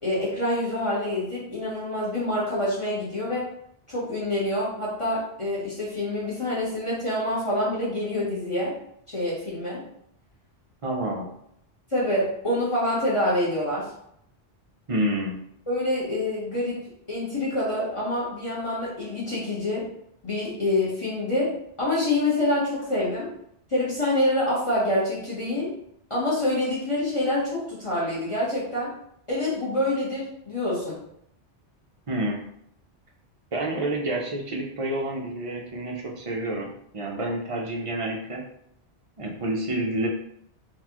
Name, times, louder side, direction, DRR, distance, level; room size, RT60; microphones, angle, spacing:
voice 1, 0.0-3.5 3.9-8.7 9.1-9.8 11.9-13.9 15.7-16.8 17.1-19.8 20.2-21.5 21.8-23.3 23.7-25.7 26.1-28.9 29.3-31.0, left 1 dB, 30° left, -7 dB, 1.1 m, -26 dB
voice 2, 10.8-11.3 14.9-15.4 32.1-32.4 33.5-36.7 36.9-38.4 39.2-40.1, right 1 dB, 45° right, 0 dB, 0.5 m, -28 dB
3.9 x 2.4 x 2.9 m, 0.72 s
omnidirectional pair, 1.1 m